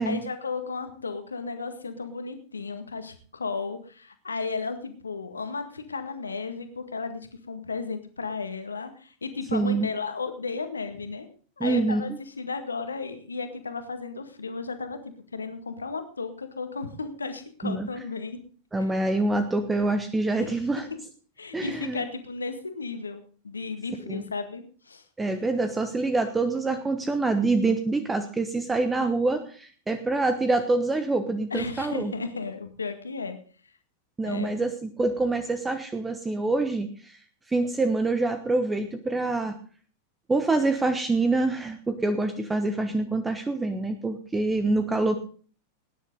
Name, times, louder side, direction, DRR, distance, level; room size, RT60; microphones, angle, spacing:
voice 1, 0.0-11.3 11.6-15.0 15.3-18.4 18.8-18.9 20.4-20.6 21.4-25.0 31.5-33.4 34.2-34.5, left 4 dB, 75° left, 8 dB, 1.9 m, -34 dB
voice 2, 9.5-9.9 11.6-12.0 17.6-17.9 18.7-20.9 21.5-22.0 24.1-24.2 25.2-32.1 34.2-37.2 37.5-39.5 40.3-45.2, right 3 dB, 10° right, 8 dB, 1.2 m, -26 dB
18.5 x 10.0 x 3.9 m, 0.42 s
figure-of-eight pair, 90°, 0 cm